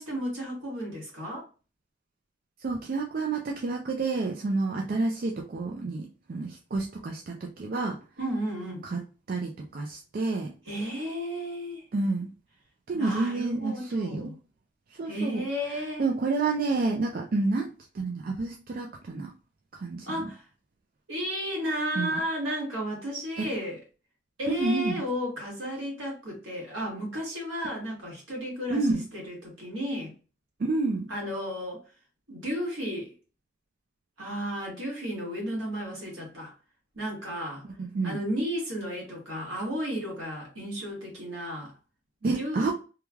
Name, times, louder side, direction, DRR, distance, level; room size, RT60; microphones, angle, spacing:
voice 1, 0.0-1.5 8.2-8.9 10.7-11.8 12.9-14.3 15.1-16.1 20.1-20.4 21.1-23.8 24.4-30.1 31.1-31.8 32.3-33.1 34.2-36.5 36.9-37.6 38.0-41.7 42.2-42.7, equal, 75° right, 1.4 m, -33 dB
voice 2, 2.6-8.0 8.8-9.0 9.3-10.5 11.9-12.3 12.9-14.3 15.0-15.4 16.0-17.7 17.9-19.3 19.7-20.3 22.0-22.2 23.4-23.5 24.5-25.0 28.7-29.0 30.6-31.1 37.8-38.2 42.2-42.7, right 3 dB, 45° right, 0.3 m, -29 dB
3.1 x 2.3 x 2.2 m
head